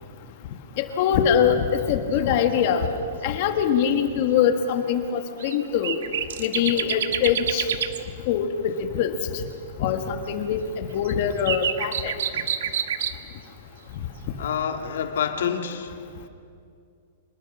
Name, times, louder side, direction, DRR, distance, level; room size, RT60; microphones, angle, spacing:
voice 1, 0.8-2.9 3.2-6.0 6.4-7.7 8.2-9.4 9.8-12.1, left 8 dB, 40° left, 7 dB, 1.6 m, -23 dB
sound 1, 5.4-5.6 5.8-8.0 11.0-13.2, right 8 dB, 70° right, 1.2 m, -28 dB
voice 2, 14.4-16.0, left 8 dB, 70° left, 6 dB, 1.8 m, -27 dB
26.5 x 20.5 x 6.2 m, 2.4 s
hypercardioid pair, 170°, 0 cm